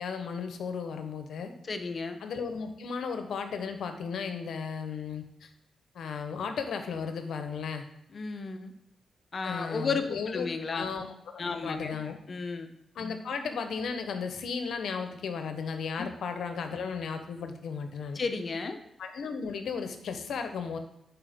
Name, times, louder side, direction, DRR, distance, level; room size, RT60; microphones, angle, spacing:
voice 1, 0.0-1.5 2.2-5.5 5.9-7.8 9.4-12.2 12.9-18.2 19.0-20.8, left 5 dB, 80° left, 7 dB, 0.9 m, -35 dB
voice 2, 1.7-2.2 8.1-8.7 9.3-10.9 11.4-12.0 12.3-12.7 16.0-16.1 18.1-18.8, left 4 dB, 45° left, 7 dB, 0.8 m, -33 dB
9.7 x 4.2 x 3.6 m, 0.81 s
cardioid pair, 95°, 0 cm